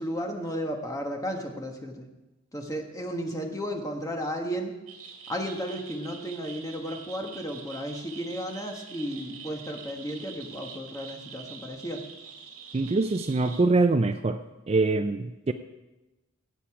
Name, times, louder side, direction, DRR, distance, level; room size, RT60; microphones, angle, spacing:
voice 1, 0.0-2.1 2.5-4.7 5.3-12.0, equal, 15° left, 2 dB, 1.4 m, -34 dB
sound 1, 4.9-13.6, right 6 dB, 85° right, 2.1 m, -45 dB
voice 2, 12.7-14.4 14.7-15.5, right 3 dB, 30° right, 9 dB, 0.4 m, -24 dB
16.0 x 8.4 x 4.8 m, 1.1 s
head